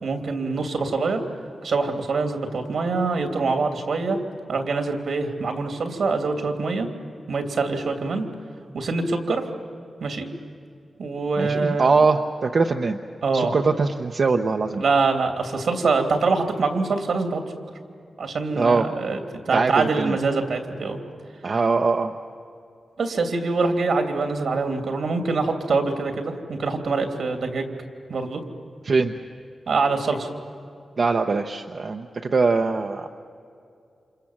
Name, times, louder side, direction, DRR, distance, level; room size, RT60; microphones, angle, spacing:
voice 1, 0.0-1.2 1.6-4.2 4.5-6.9 7.3-8.3 8.7-9.4 10.0-10.3 11.0-11.9 13.2-13.6 14.8-17.4 18.2-19.2 19.5-21.0 23.0-27.7 28.1-28.4 29.7-30.3, right 4 dB, 75° right, 5 dB, 2.9 m, -24 dB
voice 2, 11.4-13.0 13.3-14.8 18.6-18.9 19.5-20.2 21.4-22.1 28.8-29.1 31.0-33.1, right 4 dB, 50° right, 4 dB, 0.9 m, -22 dB
28.5 x 27.5 x 7.4 m, 2.5 s
wide cardioid pair, 135°, 0 cm